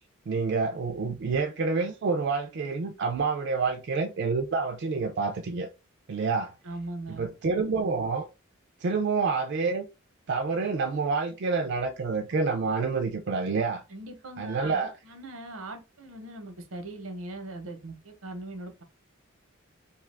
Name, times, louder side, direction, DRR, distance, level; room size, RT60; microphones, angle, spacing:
voice 1, 0.3-5.7 6.1-6.5 7.2-8.3 8.8-9.8 10.3-13.8 14.4-14.9, right 4 dB, 55° right, 0.4 m, -28 dB
voice 2, 6.6-7.3 13.9-18.8, right 2 dB, 90° right, 0.8 m, -40 dB
2.8 x 2.3 x 3.2 m
head